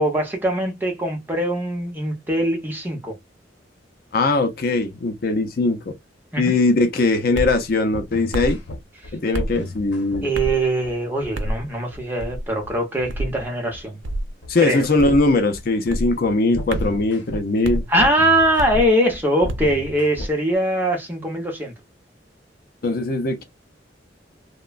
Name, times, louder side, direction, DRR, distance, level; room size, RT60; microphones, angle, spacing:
voice 1, 0.0-3.2 6.3-6.5 10.2-14.0 14.6-14.9 17.9-21.7, right 1 dB, 10° right, 0.8 m, -22 dB
voice 2, 4.1-5.9 6.4-8.6 9.1-10.3 14.5-17.8 22.8-23.4, left 2 dB, 50° left, 0.5 m, -20 dB
sound 1, 7.3-7.6 8.3-8.6 9.3-9.6 10.3-10.6 11.3-11.6 12.2-12.5 13.1-13.4 14.0-14.3 15.0-15.3 15.9-16.1 16.7-17.0 17.6-17.9 18.6-18.9 19.5-19.7, right 1 dB, 90° right, 0.5 m, -27 dB
sound 2, 7.6-20.4, left 1 dB, 70° left, 0.9 m, -35 dB
3.0 x 2.1 x 2.3 m
head